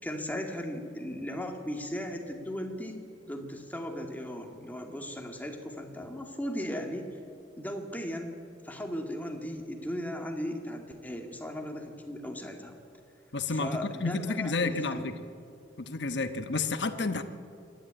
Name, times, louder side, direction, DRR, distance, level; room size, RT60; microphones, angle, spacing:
voice 1, 0.0-7.2 7.6-8.3 8.6-12.8 13.5-15.1, equal, 10° left, 3 dB, 2.2 m, -37 dB
voice 2, 13.3-15.1 15.8-17.2, left 3 dB, 75° left, 8 dB, 1.1 m, -30 dB
27.5 x 12.0 x 9.0 m, 2.4 s
head